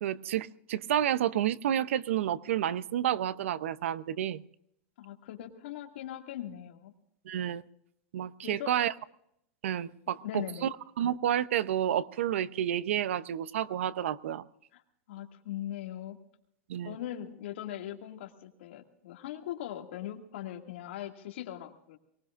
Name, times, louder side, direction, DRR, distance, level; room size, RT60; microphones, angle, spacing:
voice 1, 0.0-4.4 7.3-7.6 8.1-8.9 9.6-10.7 11.0-14.4 16.7-17.0, right 10 dB, 75° right, 17 dB, 0.7 m, -30 dB
voice 2, 5.0-6.9 8.4-8.7 10.2-10.7 14.7-14.8 15.1-16.2 16.8-22.0, left 12 dB, 60° left, 4 dB, 2.2 m, -40 dB
23.5 x 19.5 x 2.5 m, 0.77 s
supercardioid pair, 170°, 7 cm